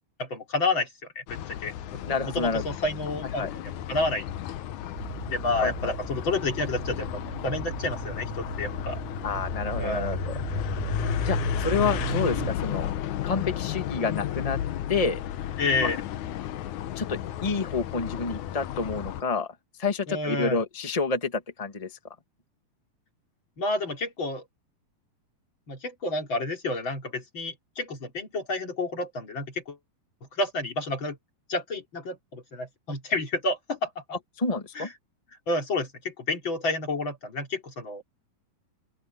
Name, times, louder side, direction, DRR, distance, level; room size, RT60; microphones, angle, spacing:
voice 1, 0.2-0.9 1.2-2.1 2.3-4.3 5.3-9.0 9.8-10.2 15.6-16.0 20.1-20.6 23.6-24.4 25.7-29.8 30.4-31.2 31.5-33.9 34.8-34.9 35.5-38.0, left 2 dB, 35° left, 3.8 m, -30 dB
sound 1, 1.3-19.2, left 11 dB, 70° left, 2.2 m, -33 dB
voice 2, 2.1-2.6 3.4-3.5 5.6-5.9 9.2-10.3 11.2-12.9 13.2-14.6 14.9-15.2 15.8-15.9 17.0-19.5 19.8-21.9 34.4-34.9, left 4 dB, 50° left, 0.4 m, -29 dB
sound 2, 5.0-12.5, right 13 dB, 90° right, 2.6 m, -36 dB
open air
omnidirectional pair, 4.0 m